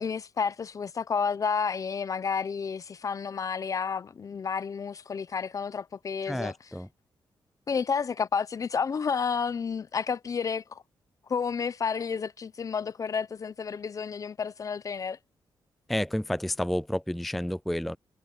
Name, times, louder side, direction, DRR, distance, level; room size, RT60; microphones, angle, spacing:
voice 1, 0.0-6.5 7.7-10.8 11.3-15.2, left 6 dB, 40° left, 0.6 m, -31 dB
voice 2, 6.3-6.9 15.9-18.0, left 1 dB, ahead, 0.3 m, -30 dB
cardioid pair, 115°, 9 cm